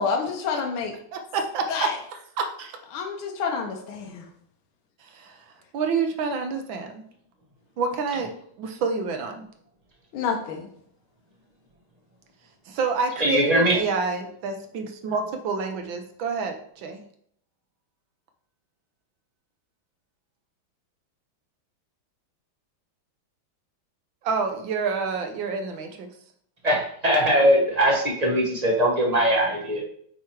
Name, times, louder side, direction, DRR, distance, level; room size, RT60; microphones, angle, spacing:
voice 1, 0.0-1.0 1.7-2.0 2.9-4.3 10.1-10.7, left 5 dB, 75° left, 1.6 m, -28 dB
voice 2, 1.1-1.9 2.4-2.8 5.1-5.4 5.7-7.0 7.8-9.4 12.7-17.0 24.2-26.1, right 4 dB, 70° right, 1.5 m, -28 dB
voice 3, 13.2-13.8 26.6-29.8, equal, 25° right, 1.0 m, -21 dB
8.3 x 3.0 x 4.5 m
omnidirectional pair, 2.3 m